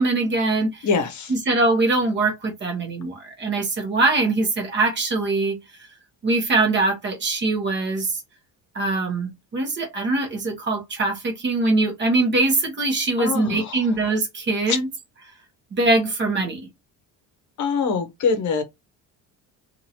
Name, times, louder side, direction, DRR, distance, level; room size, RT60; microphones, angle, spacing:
voice 1, 0.0-0.9 1.3-5.6 6.2-8.2 8.7-14.9 15.7-16.7, right 2 dB, 30° right, 1.0 m, -22 dB
voice 2, 0.8-1.3 13.2-13.8 14.7-14.8 17.6-18.6, left 5 dB, 55° left, 0.8 m, -23 dB
2.8 x 2.6 x 2.8 m
cardioid pair, 160°, 36 cm